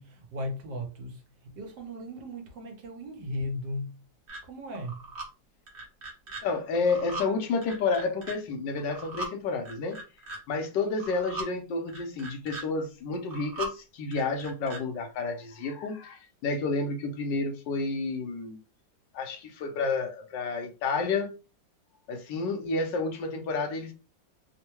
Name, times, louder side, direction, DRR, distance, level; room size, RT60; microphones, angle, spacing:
voice 1, 0.0-3.9 4.5-5.0, left 1 dB, 70° right, 1.4 m, -37 dB
sound 1, 4.3-4.4 4.7-5.3 5.7-6.4 6.7-7.3 7.6-8.4 8.8-9.3 9.7-10.4 10.9-11.5 11.9-12.6 13.1-13.7 14.1-14.8, right 3 dB, 35° right, 1.0 m, -38 dB
voice 2, 6.4-10.0 10.5-18.6 19.1-21.3 22.1-23.9, left 4 dB, 75° left, 1.3 m, -30 dB
3.5 x 2.1 x 2.9 m
omnidirectional pair, 2.0 m